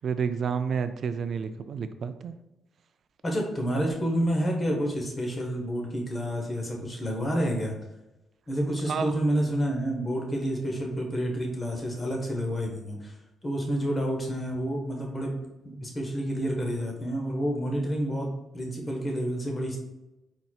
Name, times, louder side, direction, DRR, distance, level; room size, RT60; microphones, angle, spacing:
voice 1, 0.0-2.4 8.8-9.1, right 6 dB, 55° right, 11 dB, 0.4 m, -30 dB
voice 2, 3.2-7.7 8.5-13.1 13.4-15.4 15.6-19.8, equal, 25° left, 0 dB, 1.2 m, -29 dB
4.4 x 4.1 x 2.4 m, 0.98 s
cardioid pair, 90°, 0 cm